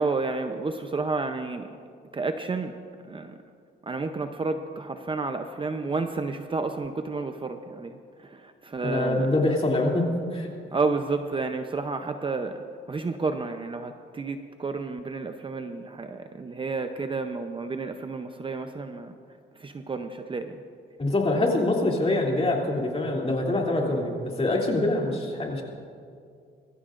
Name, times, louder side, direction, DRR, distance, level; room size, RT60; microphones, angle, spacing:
voice 1, 0.0-1.7 2.1-2.7 3.1-3.3 3.9-9.3 10.7-12.6 12.9-19.1 19.6-20.6, right 3 dB, 25° right, 7 dB, 0.7 m, -31 dB
voice 2, 8.8-10.5 21.0-25.6, left 2 dB, 30° left, -1 dB, 2.8 m, -25 dB
23.5 x 14.5 x 2.5 m, 2.3 s
cardioid pair, 90°, 20 cm